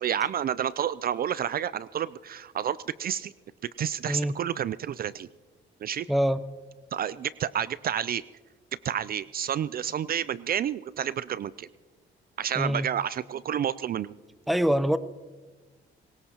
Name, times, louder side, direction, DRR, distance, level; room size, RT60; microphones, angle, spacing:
voice 1, 0.0-3.3 3.8-5.3 5.8-6.1 6.9-8.2 8.8-11.7 12.4-14.1, right 9 dB, 50° right, 18 dB, 0.4 m, -30 dB
voice 2, 6.1-6.4 12.5-12.9 14.5-15.0, equal, ahead, 14 dB, 0.6 m, -24 dB
22.0 x 19.5 x 2.9 m, 1.3 s
cardioid pair, 90°, 20 cm